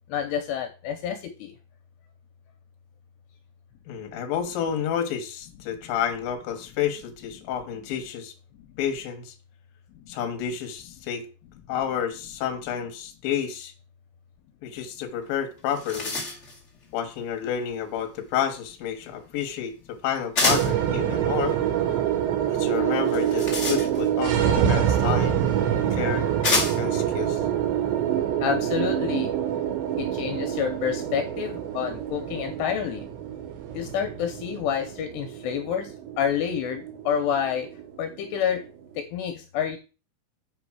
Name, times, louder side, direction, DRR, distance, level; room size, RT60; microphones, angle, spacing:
voice 1, 0.1-1.5 4.1-4.2 28.4-29.3 30.0-33.1 33.7-37.7 38.0-38.6 39.0-39.8, left 8 dB, 80° left, 5 dB, 2.8 m, -28 dB
voice 2, 3.9-8.3 8.8-9.3 10.1-11.3 11.7-13.7 14.6-16.1 16.9-19.7 20.0-21.6 22.6-25.4 25.9-26.3 26.8-27.4, left 9 dB, 65° left, 6 dB, 2.7 m, -30 dB
sound 1, 15.2-15.3 15.6-16.6 20.3-20.8 23.0-24.2 25.3-25.4 26.4-27.0, left 3 dB, 40° left, 1.0 m, -27 dB
sound 2, 20.5-38.9, right 10 dB, 85° right, 3.4 m, -26 dB
8.0 x 5.2 x 4.7 m, 0.33 s
omnidirectional pair, 5.0 m